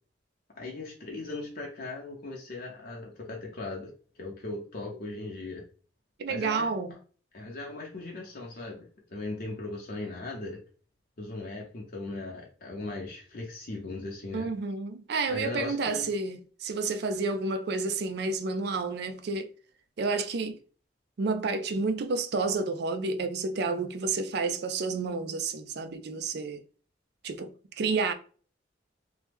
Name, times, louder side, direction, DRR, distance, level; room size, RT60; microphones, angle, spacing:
voice 1, 0.6-3.9 4.2-5.6 6.3-6.7 7.3-10.6 11.2-14.5 15.3-16.1, left 2 dB, 50° left, 0.6 m, -38 dB
voice 2, 6.2-6.9 14.3-19.5 20.0-20.6 21.2-26.6 27.2-28.1, right 4 dB, 60° right, 0.4 m, -30 dB
3.0 x 2.1 x 3.3 m
head